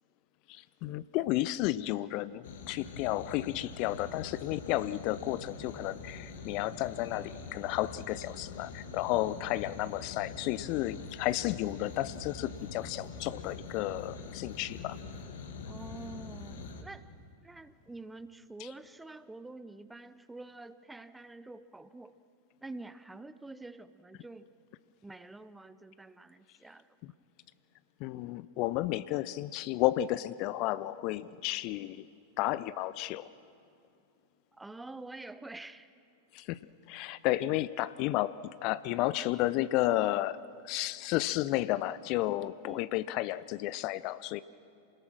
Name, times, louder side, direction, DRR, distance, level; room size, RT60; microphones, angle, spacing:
voice 1, 0.5-15.0 28.0-32.1 32.4-33.3 36.3-36.6 36.9-44.4, left 15 dB, 40° left, 17 dB, 0.5 m, -32 dB
sound 1, 2.4-16.8, left 4 dB, 60° left, 2.1 m, -44 dB
voice 2, 15.6-17.0 17.4-22.1 22.6-24.5 25.0-26.9 34.5-35.9 42.6-42.9, right 2 dB, 5° right, 15 dB, 0.8 m, -47 dB
28.5 x 20.5 x 6.2 m, 2.6 s
figure-of-eight pair, 90°, 0 cm